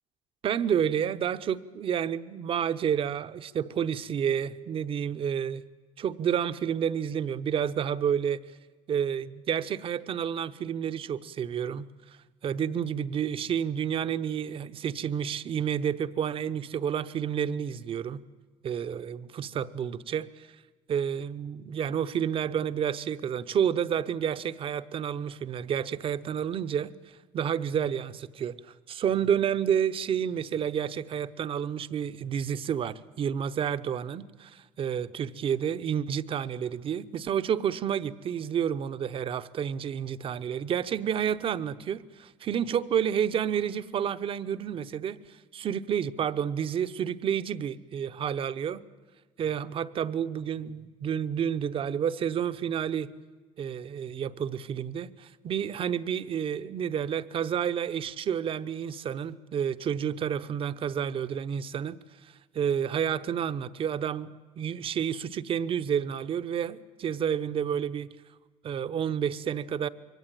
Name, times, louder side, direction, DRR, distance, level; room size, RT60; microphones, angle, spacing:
voice 1, 0.4-5.6 6.0-8.4 8.9-11.9 12.4-18.2 18.6-20.5 20.9-26.9 27.3-28.6 28.9-45.2 45.5-48.8 49.4-53.1 53.6-62.0 62.5-68.1 68.6-69.9, right 8 dB, 50° right, 13 dB, 0.8 m, -30 dB
23.0 x 17.5 x 9.2 m, 1.3 s
cardioid pair, 105°, 12 cm